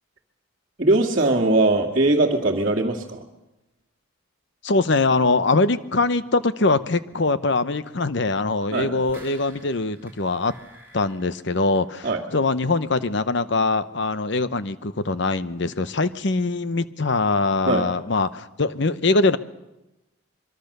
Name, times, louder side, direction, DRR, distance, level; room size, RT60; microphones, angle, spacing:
voice 1, 0.8-3.2 8.7-8.9 12.0-12.2 17.7-17.8, right 2 dB, 40° right, -6 dB, 2.1 m, -20 dB
voice 2, 4.6-10.5 10.9-19.4, left 3 dB, 55° left, 14 dB, 0.9 m, -22 dB
sound 1, 8.8-12.3 12.6-12.7, right 1 dB, 10° right, 4.9 m, -49 dB
24.0 x 23.0 x 6.7 m, 0.99 s
head